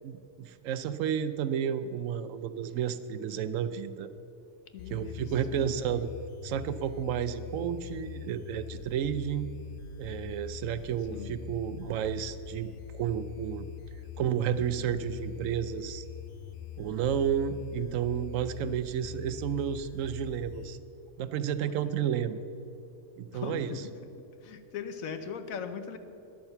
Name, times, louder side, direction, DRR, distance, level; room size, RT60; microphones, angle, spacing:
voice 1, 0.0-4.1 4.9-6.1 6.4-9.5 10.0-13.7 14.2-16.0 16.8-20.8 21.2-22.4 23.2-23.7, right 8 dB, 75° right, 13 dB, 1.0 m, -31 dB
voice 2, 4.7-5.8 11.1-11.3 21.6-21.9 23.3-24.1 24.4-26.0, left 6 dB, 90° left, 9 dB, 1.2 m, -40 dB
sound 1, 4.8-20.8, left 8 dB, 60° left, 0.6 m, -43 dB
11.0 x 8.8 x 6.8 m, 2.9 s
omnidirectional pair, 1.4 m